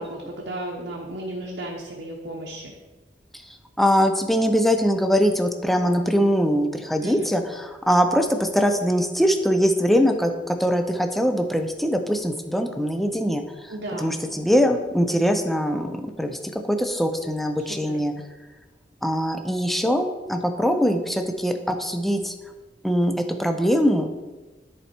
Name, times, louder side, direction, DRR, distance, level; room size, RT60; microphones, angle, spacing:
voice 1, 0.0-2.7 7.0-7.3 13.7-14.1 17.6-18.0, right 1 dB, 85° right, -2 dB, 1.0 m, -34 dB
voice 2, 3.4-13.7 14.0-18.1 19.0-22.3 22.8-24.1, equal, ahead, 5 dB, 0.5 m, -22 dB
10.5 x 4.2 x 4.3 m, 1.2 s
head